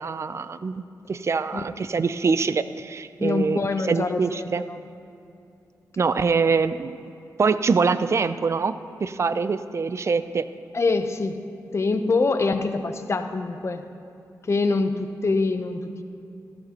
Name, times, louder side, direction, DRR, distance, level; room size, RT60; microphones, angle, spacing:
voice 1, 0.0-4.6 6.0-7.0 7.4-8.8 9.0-10.4, right 5 dB, 45° right, 13 dB, 0.4 m, -24 dB
voice 2, 3.2-4.8 10.7-11.4 11.7-13.8 14.5-16.0, left 3 dB, 45° left, 7 dB, 0.8 m, -24 dB
14.5 x 13.0 x 3.0 m, 2.7 s
cardioid pair, 75°, 7 cm